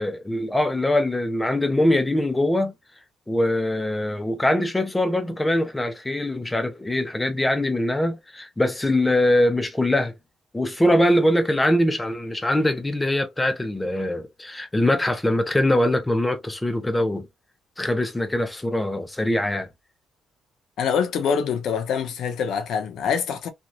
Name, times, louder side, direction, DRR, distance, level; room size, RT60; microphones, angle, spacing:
voice 1, 0.0-2.7 3.3-10.1 10.5-17.3 17.8-19.7, left 1 dB, 15° left, 0.9 m, -22 dB
voice 2, 20.8-23.5, left 7 dB, 75° left, 0.8 m, -25 dB
3.0 x 2.5 x 2.6 m
cardioid pair, 90°, 0 cm